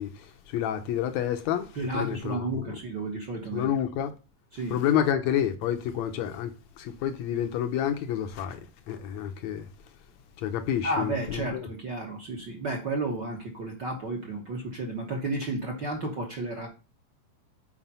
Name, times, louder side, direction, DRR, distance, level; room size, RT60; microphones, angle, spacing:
voice 1, 0.0-2.8 3.5-4.1 4.7-8.6 8.9-9.7 10.4-11.7, left 10 dB, 75° left, 1.6 m, -29 dB
voice 2, 1.7-3.7 4.5-4.8 10.8-16.7, right 2 dB, 60° right, 1.1 m, -32 dB
7.3 x 4.9 x 5.5 m
omnidirectional pair, 3.8 m